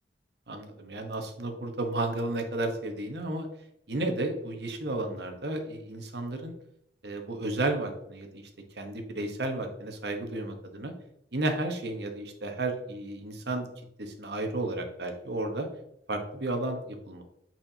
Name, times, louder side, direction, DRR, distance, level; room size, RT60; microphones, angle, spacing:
voice 1, 0.5-3.5 3.9-6.5 7.0-8.4 8.7-10.9 11.3-13.7 14.0-15.7 16.1-17.2, right 2 dB, 65° right, 4 dB, 1.1 m, -32 dB
8.4 x 4.4 x 2.8 m, 0.77 s
head